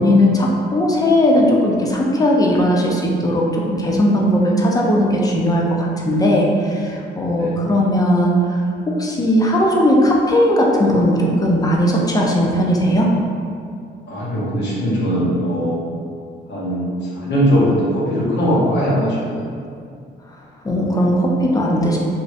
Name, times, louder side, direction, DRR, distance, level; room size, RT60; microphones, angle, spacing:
voice 1, 0.0-13.1 20.6-22.0, equal, 20° left, -2 dB, 0.4 m, -17 dB
voice 2, 14.1-15.8 16.5-19.4, equal, 60° left, -7 dB, 0.9 m, -20 dB
2.5 x 2.0 x 2.5 m, 2.3 s
cardioid pair, 90°, 20 cm